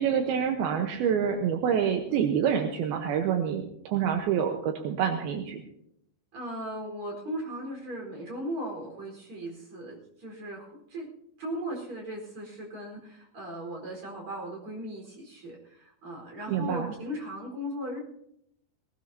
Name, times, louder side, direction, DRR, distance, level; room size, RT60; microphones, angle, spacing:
voice 1, 0.0-5.6 16.5-16.9, right 8 dB, 75° right, 3 dB, 2.9 m, -27 dB
voice 2, 6.3-11.1 11.4-18.0, equal, 35° right, 0 dB, 5.1 m, -37 dB
19.0 x 19.0 x 2.8 m, 0.73 s
omnidirectional pair, 4.5 m